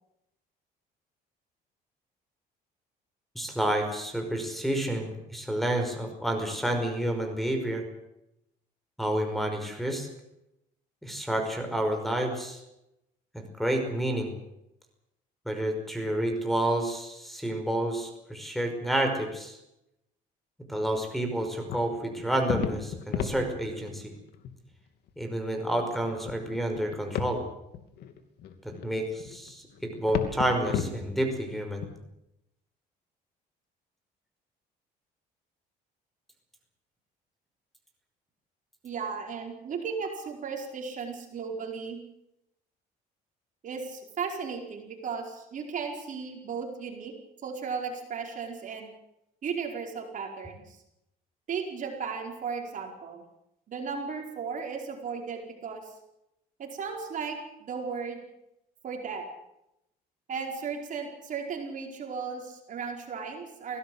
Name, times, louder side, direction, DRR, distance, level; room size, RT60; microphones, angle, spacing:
voice 1, 3.4-7.8 9.0-10.1 11.0-12.6 13.3-14.4 15.5-19.6 20.7-24.1 25.2-27.4 28.6-31.9, right 1 dB, ahead, 6 dB, 5.4 m, -29 dB
sound 1, 21.7-24.0 24.3-24.5 25.1-25.2 25.9-27.4 27.7-31.9, left 8 dB, 75° left, 2.8 m, -33 dB
voice 2, 38.8-42.0 43.6-47.1 47.4-48.9 49.4-50.8 51.5-53.2 53.7-55.8 56.6-58.2 58.8-59.2 60.3-63.8, right 5 dB, 50° right, 2 dB, 4.9 m, -35 dB
23.5 x 17.0 x 8.0 m, 0.86 s
cardioid pair, 110°, 17 cm